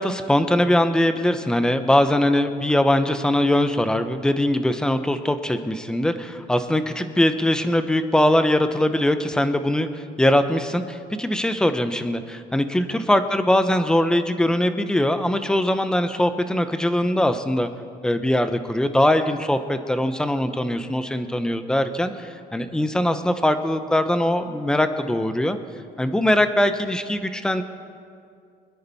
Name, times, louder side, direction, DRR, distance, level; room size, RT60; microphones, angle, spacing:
voice 1, 0.0-17.7 18.0-25.6 26.0-27.6, left 1 dB, 5° left, 9 dB, 0.8 m, -21 dB
26.0 x 10.5 x 4.2 m, 2.3 s
cardioid pair, 135°, 16 cm